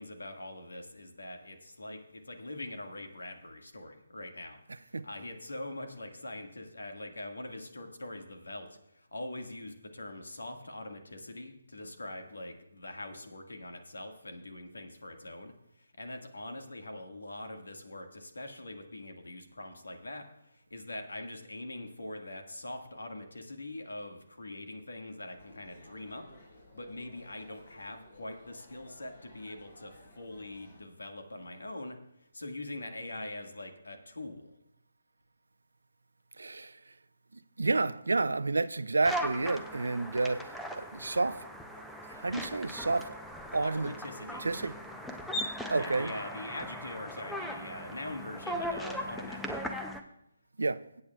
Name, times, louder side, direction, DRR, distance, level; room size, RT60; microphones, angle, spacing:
voice 1, 0.0-26.2 26.5-34.5 43.6-44.5 45.4-49.5, left 1 dB, 85° left, 1.7 m, -43 dB
voice 2, 4.7-5.0 36.4-36.8 37.6-41.5 42.1-43.2 43.5-44.0 44.2-44.7 45.7-46.2 50.6-50.8, right 3 dB, 80° right, 0.5 m, -30 dB
sound 1, 25.4-30.8, left 1 dB, 55° left, 4.2 m, -56 dB
sound 2, 39.0-50.0, equal, ahead, 0.6 m, -39 dB
21.5 x 8.5 x 2.3 m
figure-of-eight pair, 150°, 0 cm